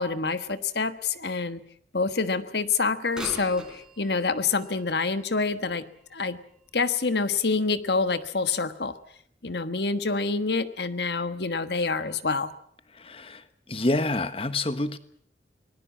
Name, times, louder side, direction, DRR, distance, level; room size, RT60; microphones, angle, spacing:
voice 1, 0.0-1.6 1.9-6.4 6.7-9.0 9.4-12.5, left 4 dB, 65° left, 11 dB, 1.4 m, -27 dB
Bird vocalization bird call bird song / Telephone, 3.1-6.9 7.5-7.6 8.4-8.5 9.1-9.2, right 1 dB, 5° right, 3.9 m, -43 dB
voice 2, 13.0-13.4 13.7-15.0, left 2 dB, 30° left, 12 dB, 1.3 m, -27 dB
24.5 x 20.0 x 7.4 m, 0.63 s
head